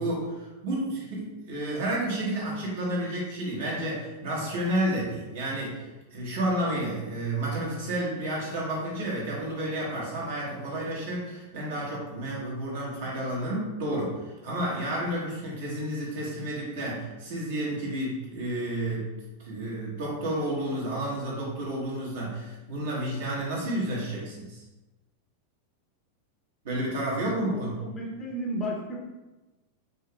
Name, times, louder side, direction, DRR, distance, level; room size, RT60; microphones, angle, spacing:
voice 1, 0.0-5.8 6.1-19.1 19.4-24.6 26.6-27.7, right 1 dB, 55° right, -4 dB, 1.2 m, -31 dB
voice 2, 27.5-29.0, equal, 20° left, -3 dB, 0.8 m, -33 dB
5.0 x 2.7 x 2.3 m, 1.1 s
figure-of-eight pair, 90°, 0 cm